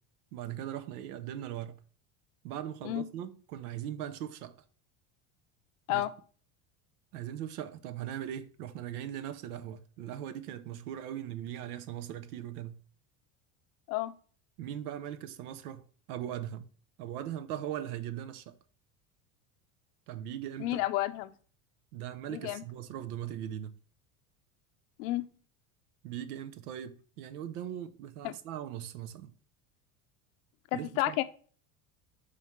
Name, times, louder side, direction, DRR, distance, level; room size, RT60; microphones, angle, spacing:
voice 1, 0.3-1.8 2.4-4.6 5.9-6.0 7.1-12.8 14.6-16.7 17.0-18.6 20.1-20.8 21.9-23.8 26.0-29.3 30.7-31.2, right 11 dB, 85° right, 0.7 m, -39 dB
voice 2, 20.6-21.3 22.3-22.6 25.0-25.3 28.2-28.3 30.7-31.2, left 16 dB, 75° left, 0.7 m, -31 dB
5.4 x 3.3 x 5.4 m
supercardioid pair, 100°, 44 cm